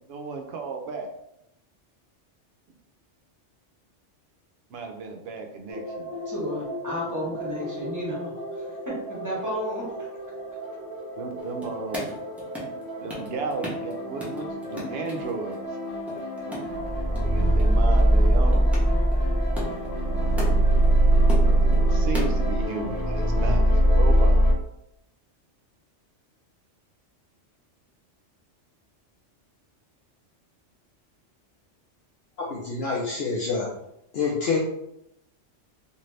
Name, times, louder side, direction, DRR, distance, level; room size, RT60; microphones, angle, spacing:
voice 1, 0.1-1.1 4.7-6.5 11.2-12.1 13.0-15.7 16.4-16.6 17.2-18.7 21.4-24.4, right 4 dB, 65° right, 3 dB, 0.7 m, -34 dB
sound 1, 5.7-24.5, right 1 dB, 35° left, 0.8 m, -24 dB
voice 2, 6.2-8.3 8.6-10.1, equal, 15° right, -5 dB, 0.9 m, -32 dB
sound 2, 11.4-12.8 13.1-13.9 14.2-15.6 15.8-17.3 17.6-17.7 18.0-20.9 21.2-22.5, left 1 dB, ahead, 0.6 m, -35 dB
voice 3, 32.4-33.7 34.1-34.6, left 4 dB, 65° left, -3 dB, 0.7 m, -27 dB
2.6 x 2.5 x 3.1 m, 0.80 s
omnidirectional pair, 1.2 m